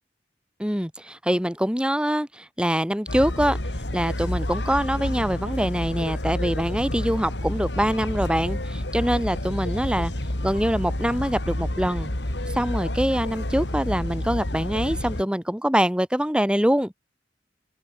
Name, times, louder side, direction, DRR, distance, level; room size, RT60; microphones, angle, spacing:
voice 1, 0.6-3.6 3.9-10.1 10.4-12.1 12.5-16.9, equal, 5° right, 2.3 m, -24 dB
sound 1, 3.1-15.2, left 1 dB, 85° left, 3.3 m, -29 dB
head